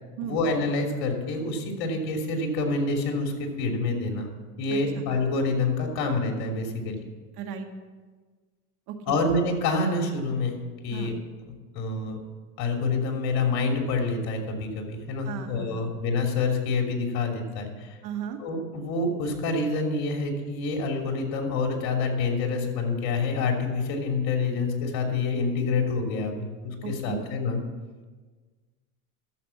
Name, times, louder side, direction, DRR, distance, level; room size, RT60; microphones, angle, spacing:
voice 1, 0.2-4.3 4.6-7.0 9.1-10.6 10.8-11.1 11.7-12.2 12.6-18.0 18.4-27.6, left 3 dB, 50° left, 2 dB, 3.1 m, -27 dB
voice 2, 4.7-5.0 7.4-7.7 8.9-9.2 10.9-11.1 15.3-15.9 18.0-18.4 26.8-27.2, right 8 dB, 50° right, 5 dB, 1.7 m, -36 dB
12.0 x 7.6 x 7.2 m, 1.4 s
supercardioid pair, 115°, 48 cm